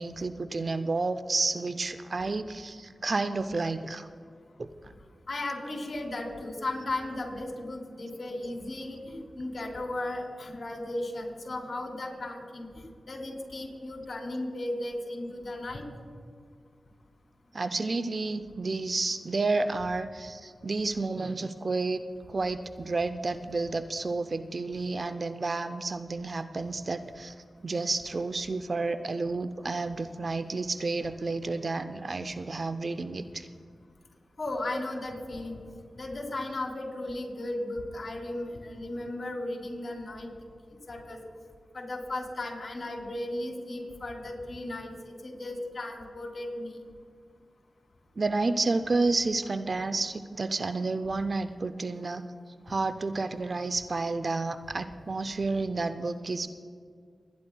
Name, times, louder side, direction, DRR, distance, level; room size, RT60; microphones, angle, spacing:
voice 1, 0.0-4.1 4.6-4.9 17.5-22.0 22.3-27.3 27.6-33.5 48.2-52.2 52.7-56.5, right 3 dB, 50° right, 11 dB, 0.5 m, -30 dB
voice 2, 5.3-12.7 13.1-15.9 34.4-35.6 36.0-40.3 40.7-41.2 41.7-46.7, left 1 dB, 55° left, 1 dB, 3.0 m, -35 dB
26.5 x 10.5 x 2.3 m, 2.1 s
cardioid pair, 45°, 0 cm